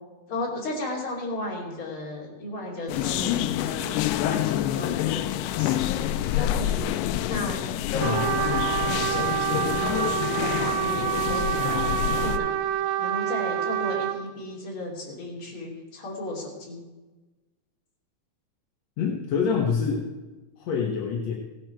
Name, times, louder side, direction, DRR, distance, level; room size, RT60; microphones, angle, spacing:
voice 1, 0.3-3.9 4.2-6.8 7.3-7.6 7.9-9.9 10.4-11.9 12.2-12.5 13.0-16.8, left 1 dB, 35° left, -3 dB, 3.5 m, -34 dB
sound 1, 2.9-12.4, left 12 dB, 80° left, 2.0 m, -27 dB
Trumpet, 8.0-14.2, right 11 dB, 75° right, 1.6 m, -27 dB
voice 2, 19.0-20.1 20.6-21.3, left 6 dB, 65° left, 0 dB, 1.9 m, -26 dB
16.5 x 11.0 x 4.6 m, 1.2 s
omnidirectional pair, 4.1 m